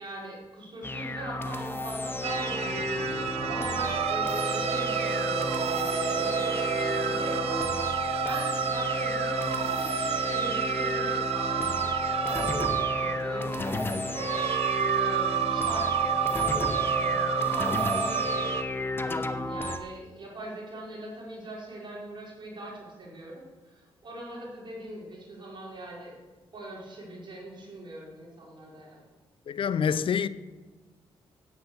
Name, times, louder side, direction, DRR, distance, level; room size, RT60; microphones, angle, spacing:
voice 1, 0.0-3.2 3.5-14.6 14.9-18.6 19.5-26.2 26.5-29.0, right 1 dB, 50° right, 4.6 m, -41 dB
sound 1, 0.8-19.8, left 2 dB, 20° left, 1.0 m, -32 dB
sound 2, 2.2-18.6, right 9 dB, 80° right, 0.7 m, -30 dB
Brass instrument, 3.8-8.0, right 2 dB, 25° right, 0.8 m, -36 dB
voice 2, 29.5-30.3, left 7 dB, 60° left, 0.6 m, -26 dB
9.4 x 8.1 x 8.1 m
cardioid pair, 70°, 10 cm